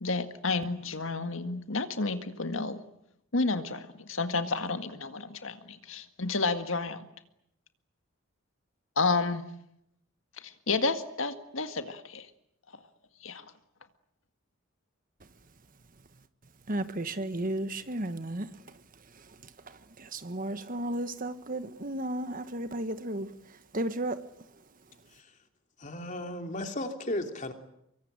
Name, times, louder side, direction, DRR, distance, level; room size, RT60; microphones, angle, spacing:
voice 1, 0.0-2.8 3.3-7.1 9.0-9.4 10.4-12.3 13.2-13.5, left 3 dB, 70° left, 8 dB, 1.9 m, -31 dB
voice 2, 16.7-18.5 20.1-23.3 23.7-24.2, right 1 dB, 40° right, 11 dB, 1.4 m, -33 dB
voice 3, 25.8-27.5, left 1 dB, 35° left, 5 dB, 3.1 m, -35 dB
25.0 x 23.5 x 9.0 m, 0.78 s
head